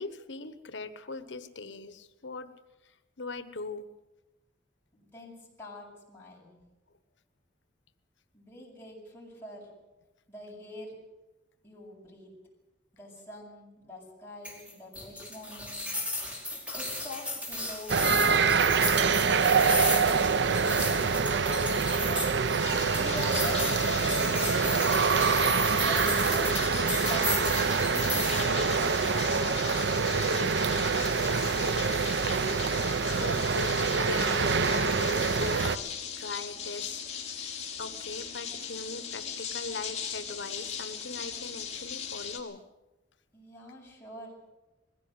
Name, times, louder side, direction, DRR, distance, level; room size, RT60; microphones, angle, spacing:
voice 1, 0.0-2.5 2.8-3.9 33.2-37.0 37.4-37.5 37.8-42.6, left 3 dB, 80° left, 11 dB, 1.2 m, -41 dB
voice 2, 4.9-6.6 8.3-9.7 10.3-10.9 11.6-12.3 12.9-15.9 16.7-20.2 20.5-22.3 22.9-25.1 25.7-29.9 43.3-44.5, left 1 dB, 10° left, -7 dB, 7.7 m, -44 dB
sound 1, 14.4-28.5, left 2 dB, 5° right, 4.9 m, -35 dB
sound 2, 17.9-35.8, right 5 dB, 70° right, 0.7 m, -26 dB
sound 3, 22.6-42.4, left 7 dB, 40° left, 3.2 m, -38 dB
21.0 x 16.0 x 8.1 m, 1.0 s
head